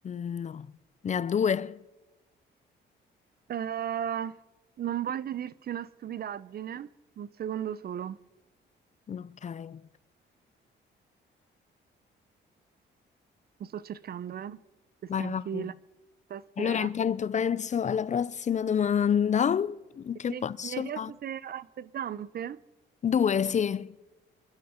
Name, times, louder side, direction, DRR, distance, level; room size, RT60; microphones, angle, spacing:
voice 1, 0.0-0.7 1.0-1.8 9.1-9.8 15.1-15.7 16.6-21.1 23.0-23.9, left 8 dB, 35° left, 0.5 m, -28 dB
voice 2, 3.5-4.4 4.8-6.9 7.2-8.2 13.6-14.6 15.0-15.7 16.3-16.9 20.3-22.6, right 9 dB, 50° right, 0.6 m, -35 dB
27.0 x 12.5 x 4.4 m
cardioid pair, 90°, 20 cm